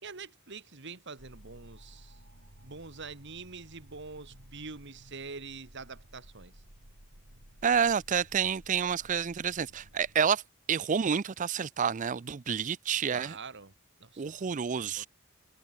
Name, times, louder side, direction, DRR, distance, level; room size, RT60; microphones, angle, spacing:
voice 1, 0.0-2.2 2.6-6.5 13.1-13.7 14.0-15.1, right 4 dB, 60° right, 2.1 m, -45 dB
sound 1, 1.2-10.3, right 1 dB, 80° right, 5.1 m, -55 dB
voice 2, 7.6-10.4 10.7-13.4 14.2-15.1, right 7 dB, 35° right, 0.4 m, -29 dB
head